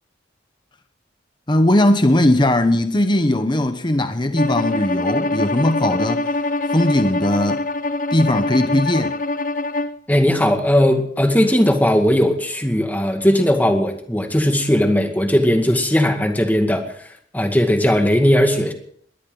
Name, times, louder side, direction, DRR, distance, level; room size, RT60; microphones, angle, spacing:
voice 1, 1.5-6.2 6.7-7.6 8.1-9.2, left 1 dB, 25° left, 1.0 m, -18 dB
Bowed string instrument, 4.4-10.0, left 2 dB, 45° left, 0.7 m, -23 dB
voice 2, 10.1-16.9 17.3-18.7, equal, 10° left, 2.0 m, -17 dB
21.5 x 16.5 x 4.0 m
head